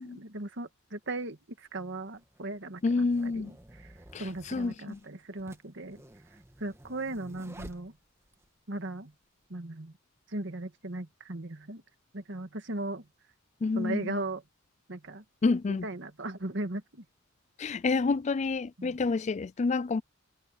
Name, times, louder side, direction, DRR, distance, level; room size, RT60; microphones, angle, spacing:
voice 1, 0.0-3.9 4.2-6.0 6.6-7.9 8.7-9.1 9.5-9.9 10.3-11.8 12.1-13.0 13.8-14.4 14.9-15.2 15.7-16.8 18.8-19.0, right 2 dB, 60° right, 2.0 m, -37 dB
sound 1, 1.0-1.1 2.1-8.5, right 1 dB, 15° right, 1.6 m, -52 dB
voice 2, 2.8-3.5 4.1-5.0 13.6-14.2 15.4-15.9 17.6-20.0, left 4 dB, 35° left, 0.4 m, -28 dB
head